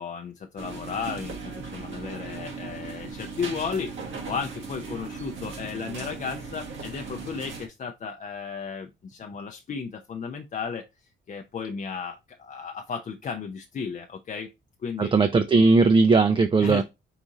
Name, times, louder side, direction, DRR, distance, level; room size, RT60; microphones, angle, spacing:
voice 1, 0.0-10.9 11.3-14.5 14.8-15.1 16.6-16.8, left 6 dB, 40° left, 0.5 m, -34 dB
sound 1, 0.6-7.7, right 4 dB, 70° right, 1.4 m, -38 dB
voice 2, 15.0-16.8, right 4 dB, 25° right, 0.4 m, -18 dB
4.8 x 2.6 x 3.9 m
cardioid pair, 90°, 20 cm